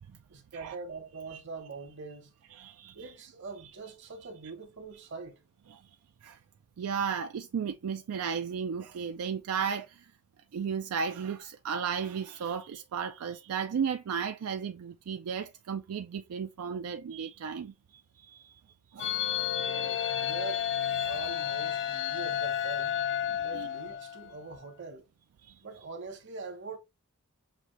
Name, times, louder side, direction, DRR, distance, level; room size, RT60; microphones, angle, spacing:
voice 1, 0.3-2.3 2.9-5.4 19.6-20.7 21.0-23.0 23.4-25.1 25.6-26.8, right 4 dB, 55° right, 1.1 m, -43 dB
voice 2, 2.5-3.1 5.7-5.8 6.2-6.4 6.8-10.1 10.5-18.6 18.9-19.2 23.5-23.7 25.4-25.6, right 6 dB, 80° right, 0.4 m, -34 dB
sound 1, 19.0-24.4, left 9 dB, 55° left, 0.5 m, -31 dB
6.0 x 2.6 x 3.1 m
head